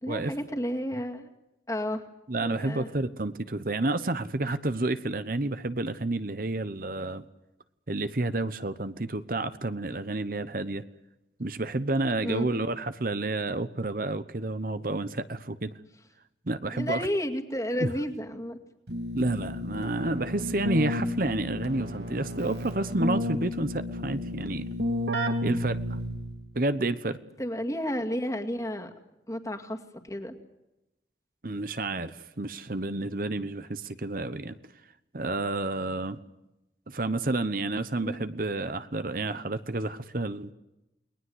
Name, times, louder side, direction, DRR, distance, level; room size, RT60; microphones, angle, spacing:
voice 1, 0.0-1.3 1.7-2.0 2.4-2.9 12.2-12.5 16.7-18.6 27.4-28.9 29.3-30.3 38.0-38.1, equal, 20° left, 5 dB, 2.3 m, -32 dB
voice 2, 2.3-7.2 7.9-10.8 11.4-15.7 16.5-17.1 17.8-17.9 19.1-24.7 25.4-26.0 26.5-27.2 31.4-34.5 35.1-36.2 36.9-40.5, right 2 dB, 50° right, 12 dB, 1.0 m, -30 dB
Keyboard (musical), 18.9-26.4, equal, 75° right, 2.8 m, -32 dB
29.5 x 20.5 x 8.0 m, 0.94 s
head